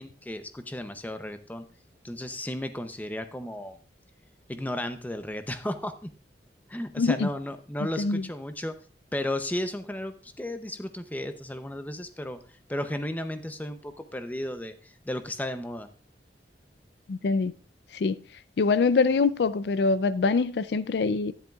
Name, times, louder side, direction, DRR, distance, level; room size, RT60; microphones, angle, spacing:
voice 1, 0.0-1.7 2.0-3.8 4.5-6.1 6.7-8.7 9.1-12.4 12.7-15.9, left 1 dB, 10° left, 0.6 m, -34 dB
voice 2, 7.0-7.3 8.0-8.2 17.1-17.5 17.9-18.2 18.6-21.3, left 4 dB, 70° left, 0.4 m, -24 dB
12.0 x 10.5 x 2.4 m
head